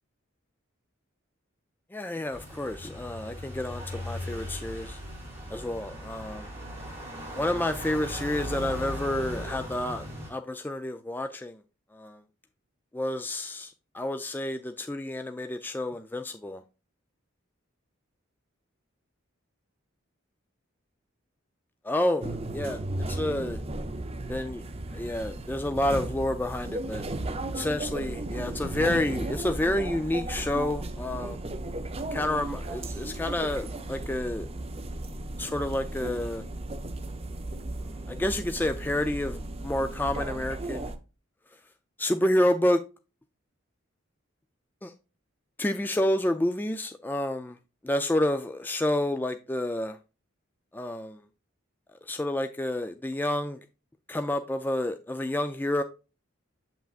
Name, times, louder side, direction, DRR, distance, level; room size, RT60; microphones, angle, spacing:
voice 1, 1.9-5.0 5.5-6.5 7.3-11.6 11.9-12.2 12.9-16.6 21.8-22.8 23.1-23.6 24.3-24.6 24.9-27.1 27.5-31.4 32.1-34.5 35.4-36.4 37.8-40.9 42.0-42.8 44.8-44.9 45.6-47.6 47.8-50.0 50.7-51.2 52.0-53.6 54.1-55.8, left 1 dB, 10° left, 0.4 m, -29 dB
sound 1, 2.3-10.3, equal, 10° right, 3.2 m, -38 dB
sound 2, 22.2-41.0, right 2 dB, 30° right, 0.6 m, -35 dB
7.6 x 5.7 x 2.4 m
head